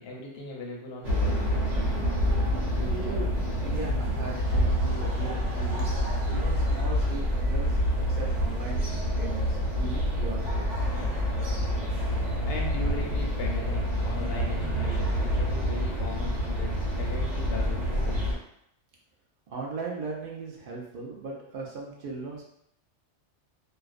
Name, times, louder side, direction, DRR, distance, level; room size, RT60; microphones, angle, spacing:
voice 1, 0.0-1.7 5.8-5.9 12.5-18.3, left 3 dB, 65° left, -1 dB, 0.7 m, -39 dB
sound 1, 1.0-18.3, equal, 85° right, 1.2 m, -27 dB
voice 2, 2.7-3.3 3.6-5.9 6.3-7.8 8.1-8.8 9.2-10.9 19.5-22.4, right 3 dB, 60° right, -2 dB, 0.6 m, -38 dB
Laughter, 3.8-12.3, right 1 dB, 15° right, 0.6 m, -46 dB
2.4 x 2.1 x 2.4 m, 0.73 s
omnidirectional pair, 1.2 m